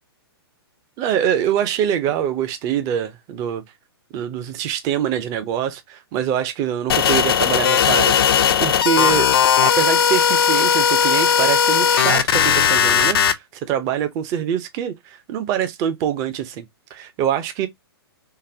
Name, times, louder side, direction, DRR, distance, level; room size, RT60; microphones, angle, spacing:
voice 1, 1.0-3.6 4.1-8.1 8.6-16.7 16.9-17.7, right 9 dB, 25° right, 0.6 m, -24 dB
sound 1, 6.9-13.3, left 8 dB, 65° left, 0.5 m, -17 dB
3.8 x 2.2 x 2.6 m
hypercardioid pair, 145°, 13 cm